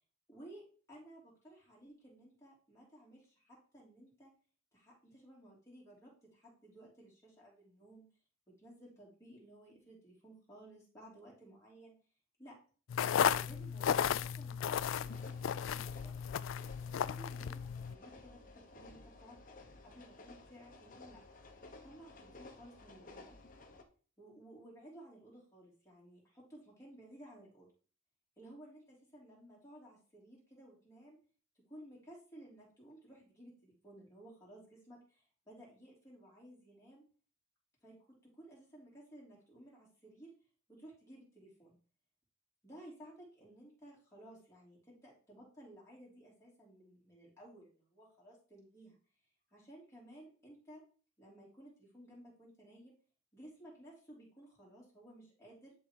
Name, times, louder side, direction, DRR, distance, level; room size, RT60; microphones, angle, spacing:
voice 1, 0.3-4.3 4.7-8.1 8.5-12.0 12.4-12.6 13.1-16.2 17.0-19.4 19.8-21.2 21.8-23.4 24.2-27.7 28.4-31.2 31.7-37.0 37.8-40.3 40.7-41.8 42.6-49.0 49.5-50.8 51.2-52.9 53.3-55.7, right 1 dB, 15° left, -5 dB, 3.0 m, -56 dB
sound 1, 12.9-17.9, left 8 dB, 85° left, 0.3 m, -34 dB
sound 2, 14.6-23.8, left 2 dB, 45° left, 1.0 m, -55 dB
10.5 x 3.7 x 4.5 m, 0.41 s
head